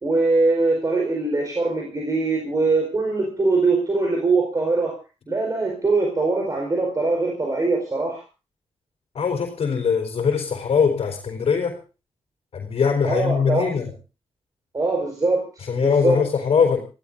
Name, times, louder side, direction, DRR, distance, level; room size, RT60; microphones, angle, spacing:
voice 1, 0.0-5.0 5.3-8.2 13.0-13.6 14.7-16.2, right 3 dB, 30° right, 1 dB, 4.7 m, -22 dB
voice 2, 9.1-11.8 12.5-13.9 15.7-16.8, left 6 dB, 70° left, 2 dB, 4.1 m, -21 dB
28.5 x 16.5 x 2.7 m, 0.32 s
wide cardioid pair, 110°, 11 cm